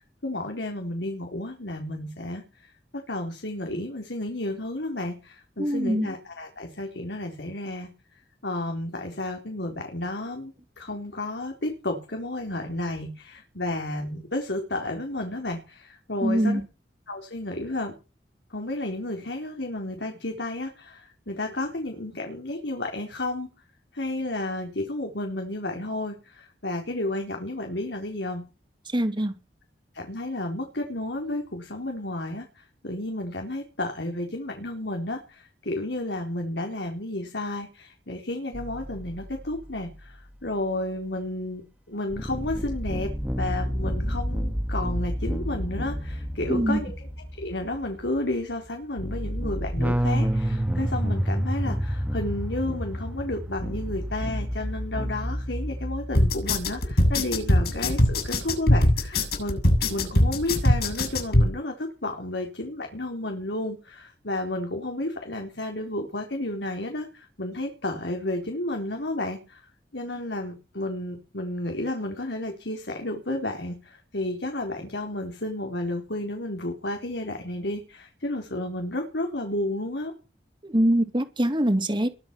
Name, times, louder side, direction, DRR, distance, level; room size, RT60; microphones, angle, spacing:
voice 1, 0.2-2.7 3.1-7.9 8.4-16.6 17.1-17.9 18.5-23.5 23.9-28.4 29.9-41.6 41.9-59.6 59.9-69.6 69.9-80.1, left 1 dB, 85° left, 3 dB, 4.2 m, -32 dB
voice 2, 5.6-6.1 16.2-16.6 28.9-29.4 46.5-46.8 80.6-82.1, right 1 dB, 30° right, 7 dB, 2.8 m, -23 dB
sound 1, 38.5-39.9 42.1-58.2, equal, 10° right, 2.1 m, -30 dB
sound 2, 56.1-61.5, left 1 dB, 65° left, 7.7 m, -21 dB
22.5 x 8.7 x 6.2 m, 0.31 s
head